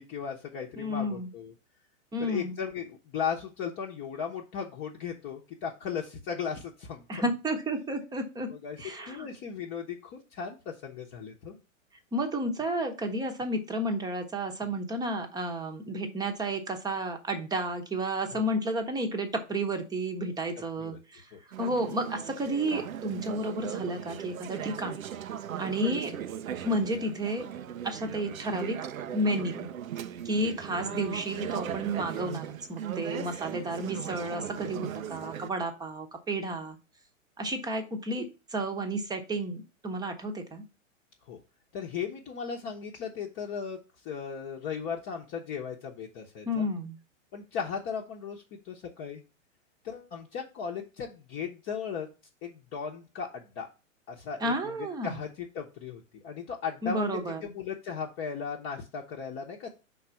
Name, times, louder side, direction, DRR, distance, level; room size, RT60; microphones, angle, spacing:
voice 1, 0.0-1.5 2.2-7.0 8.5-11.6 18.3-18.4 20.8-21.0 21.3-21.4 41.2-41.4 41.7-46.7 47.3-49.2 49.8-52.1 52.4-53.7 54.1-54.8 55.0-59.7, left 6 dB, 30° left, 0 dB, 0.9 m, -37 dB
voice 2, 0.8-1.3 2.1-2.5 7.1-8.5 8.8-9.3 12.1-21.3 21.6-25.0 25.6-26.1 26.6-27.5 27.8-28.8 29.1-29.7 30.2-36.8 37.4-40.6 46.5-47.0 54.4-55.2 56.8-57.5, right 1 dB, 10° right, 5 dB, 0.9 m, -31 dB
Conversation / Chatter, 21.5-35.5, right 9 dB, 85° right, 0.6 m, -38 dB
5.1 x 4.0 x 5.7 m, 0.30 s
hypercardioid pair, 120°, 40 cm